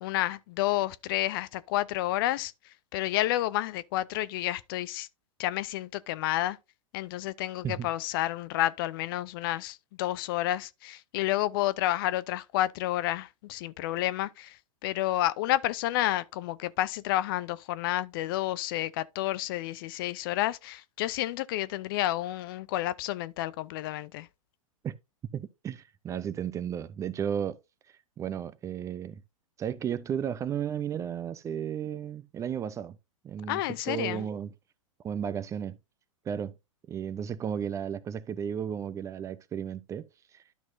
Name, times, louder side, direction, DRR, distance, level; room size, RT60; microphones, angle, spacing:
voice 1, 0.0-2.5 2.9-5.1 5.4-6.6 6.9-14.6 14.8-24.3 33.5-34.2, left 15 dB, 40° left, 0.5 m, -30 dB
voice 2, 25.3-27.6 28.2-29.2 29.6-33.0 33.2-33.6 33.9-34.5 35.0-35.8 36.3-36.5 36.9-40.0 40.3-40.4, right 8 dB, 15° right, 0.5 m, -33 dB
12.0 x 6.0 x 2.6 m
figure-of-eight pair, 100°, 17 cm